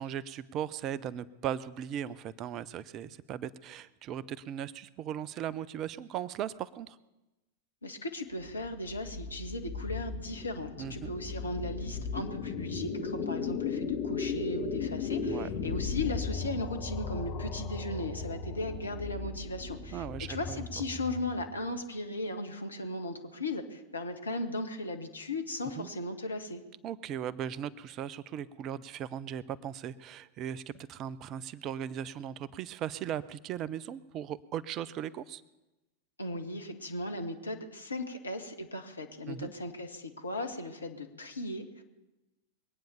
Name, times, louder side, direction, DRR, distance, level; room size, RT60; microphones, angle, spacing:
voice 1, 0.0-7.0 10.8-11.1 15.3-15.5 19.9-20.6 25.8-25.9 26.8-35.4 39.3-39.5, right 10 dB, 35° right, 19 dB, 0.6 m, -38 dB
voice 2, 7.8-26.6 36.2-41.6, left 2 dB, 80° left, 5 dB, 1.6 m, -37 dB
sound 1, 8.4-21.6, left 5 dB, 45° left, 2.6 m, -36 dB
22.5 x 9.1 x 7.0 m, 1.0 s
figure-of-eight pair, 90°, 0 cm